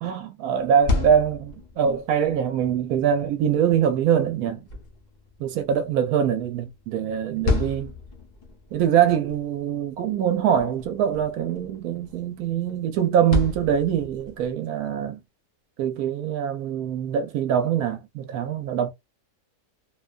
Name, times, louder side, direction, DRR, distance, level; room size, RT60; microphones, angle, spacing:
voice 1, 0.0-4.6 5.4-7.9 8.7-15.2 15.8-18.9, right 8 dB, 75° right, 1.0 m, -23 dB
sound 1, 0.6-14.5, left 3 dB, 45° left, 0.5 m, -34 dB
2.7 x 2.2 x 2.3 m
omnidirectional pair, 1.7 m